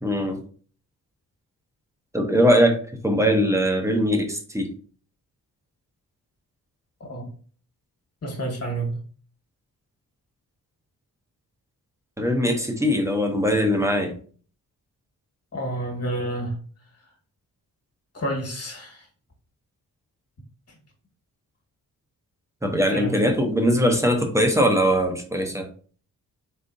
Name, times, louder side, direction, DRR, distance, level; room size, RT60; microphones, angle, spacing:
voice 1, 0.0-0.4 2.1-4.7 12.2-14.2 22.6-25.7, equal, 10° right, 0.8 m, -21 dB
voice 2, 8.2-9.0 15.5-16.6 18.1-19.1 22.7-23.3, right 1 dB, 40° left, 1.6 m, -29 dB
4.1 x 3.8 x 2.7 m
wide cardioid pair, 125°, 36 cm